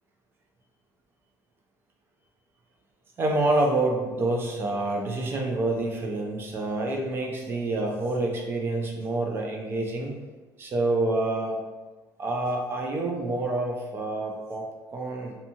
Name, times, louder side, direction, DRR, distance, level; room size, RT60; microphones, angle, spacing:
voice 1, 3.2-10.1 10.6-11.6 12.2-14.6 14.9-15.3, right 2 dB, 30° right, 1 dB, 0.4 m, -27 dB
2.6 x 2.2 x 2.8 m, 1.2 s
cardioid pair, 180°, 8 cm